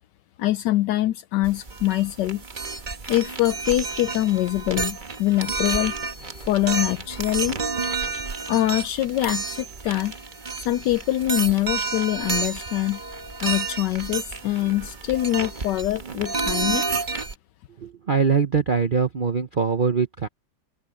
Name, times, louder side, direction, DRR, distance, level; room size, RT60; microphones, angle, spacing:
voice 1, 0.4-2.4 3.1-5.9 6.4-7.6 8.5-10.1 10.5-13.0 13.4-17.0, left 15 dB, 70° left, 1.1 m, -24 dB
sound 1, 1.4-17.3, right 4 dB, 30° right, 1.1 m, -30 dB
voice 2, 17.8-20.3, right 6 dB, 85° right, 0.4 m, -22 dB
omnidirectional pair, 2.2 m